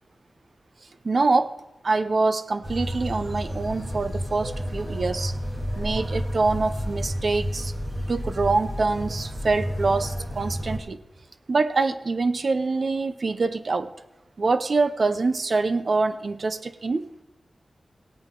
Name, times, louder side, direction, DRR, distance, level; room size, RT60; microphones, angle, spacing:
voice 1, 1.0-1.5 1.8-5.3 5.8-7.7 8.1-11.0 11.5-13.9 14.4-17.0, right 3 dB, 55° right, 11 dB, 0.7 m, -25 dB
sound 1, 2.6-10.8, equal, 30° right, 2.3 m, -31 dB
17.0 x 8.9 x 3.8 m, 0.98 s
wide cardioid pair, 105°, 0 cm